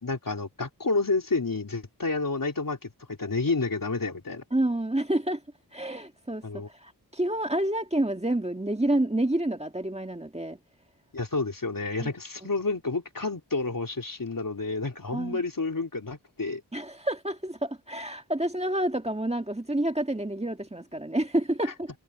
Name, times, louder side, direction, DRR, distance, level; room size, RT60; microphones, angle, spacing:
voice 1, 0.0-4.4 6.4-6.7 11.1-16.6 21.6-21.7, left 3 dB, 55° left, 3.9 m, -30 dB
voice 2, 4.5-5.4 5.7-10.6 12.0-12.1 15.1-15.4 16.7-21.9, right 1 dB, 15° right, 1.9 m, -28 dB
wide cardioid pair, 60°, 39 cm